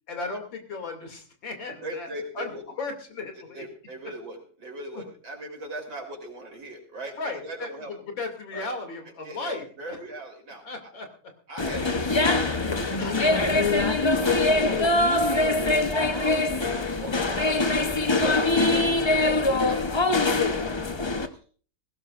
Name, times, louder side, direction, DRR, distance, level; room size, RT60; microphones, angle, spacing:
voice 1, 0.1-2.1 2.3-2.5 2.8-3.6 7.2-7.7 8.2-10.0 10.6-11.1 13.0-13.6 18.1-18.3, left 3 dB, 75° left, 4 dB, 3.4 m, -35 dB
voice 2, 1.8-2.6 3.4-7.9 8.5-8.7 9.2-10.9 11.5-13.2 14.8-15.4 15.9-17.7 18.2-21.4, right 1 dB, 75° right, 1 dB, 4.6 m, -40 dB
sound 1, 11.6-21.3, left 2 dB, 45° left, 0.3 m, -23 dB
20.0 x 17.0 x 2.5 m, 0.42 s
omnidirectional pair, 2.1 m